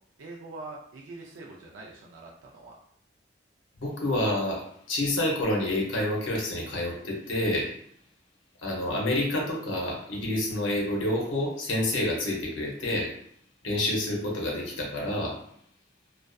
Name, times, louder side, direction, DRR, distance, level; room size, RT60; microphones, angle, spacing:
voice 1, 0.2-2.8, right 2 dB, 85° right, -2 dB, 0.4 m, -44 dB
voice 2, 3.8-4.6 4.9-7.7 8.6-13.1 13.6-15.3, left 1 dB, 85° left, -2 dB, 0.7 m, -28 dB
2.5 x 2.2 x 2.2 m, 0.67 s
head